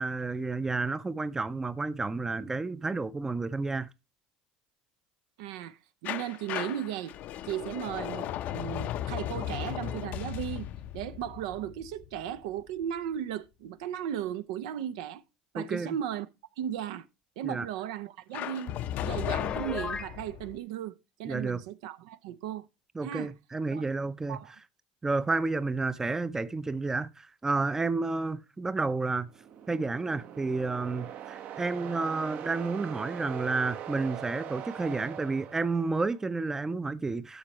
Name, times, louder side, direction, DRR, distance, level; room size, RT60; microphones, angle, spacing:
voice 1, 0.0-3.9 15.5-16.0 17.4-17.7 21.3-21.6 23.0-24.4 25.0-29.3 29.7-37.4, right 3 dB, 15° right, 0.5 m, -31 dB
voice 2, 5.4-7.2 7.4-10.7 10.9-15.2 15.5-16.3 16.6-17.1 17.4-18.8 19.0-22.7 23.0-23.3 23.7-23.8 24.3-24.5, right 10 dB, 80° right, 0.6 m, -36 dB
sound 1, 6.1-12.8 18.3-20.6, left 12 dB, 55° left, 0.6 m, -36 dB
Piano, 19.3-20.2, left 5 dB, 25° left, 0.8 m, -36 dB
sound 2, 29.2-36.2, right 10 dB, 55° right, 0.8 m, -42 dB
12.0 x 6.0 x 3.0 m
supercardioid pair, 100°, 3 cm